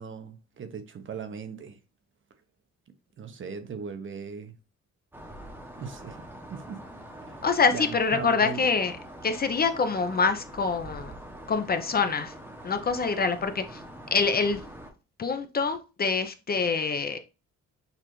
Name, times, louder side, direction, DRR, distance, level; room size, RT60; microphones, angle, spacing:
voice 1, 0.0-1.8 3.2-4.6 5.7-6.2 6.5-6.8 7.2-7.4 7.7-8.6, right 5 dB, 40° right, 0.7 m, -38 dB
sound 1, 5.1-14.9, right 1 dB, 5° right, 0.8 m, -44 dB
voice 2, 7.4-8.9 9.2-11.1 11.5-12.3 12.6-13.8 14.1-14.6 15.2-17.2, left 4 dB, 30° left, 0.5 m, -25 dB
6.6 x 2.4 x 3.0 m
cardioid pair, 90°, 30 cm